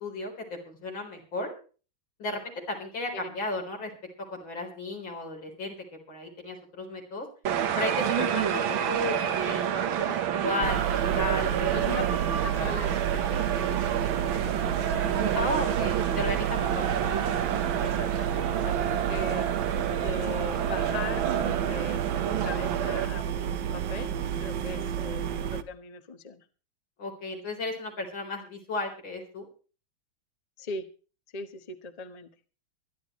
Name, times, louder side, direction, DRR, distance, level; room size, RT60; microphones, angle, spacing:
voice 1, 0.0-1.5 2.2-3.9 4.4-5.7 6.1-7.2 7.7-10.2 10.4-11.7 15.3-16.8 24.7-24.8 27.0-29.5, left 2 dB, 80° left, 2 dB, 4.8 m, -34 dB
sound 1, 7.5-23.1, right 9 dB, 85° right, 2.0 m, -29 dB
sound 2, 10.6-25.6, right 10 dB, 70° right, 1.5 m, -31 dB
voice 2, 11.7-15.5 17.0-17.1 17.8-19.5 20.0-24.1 24.4-26.4 30.6-30.9 31.3-32.3, left 3 dB, 25° left, 8 dB, 1.0 m, -40 dB
24.0 x 11.0 x 3.1 m, 0.37 s
omnidirectional pair, 2.1 m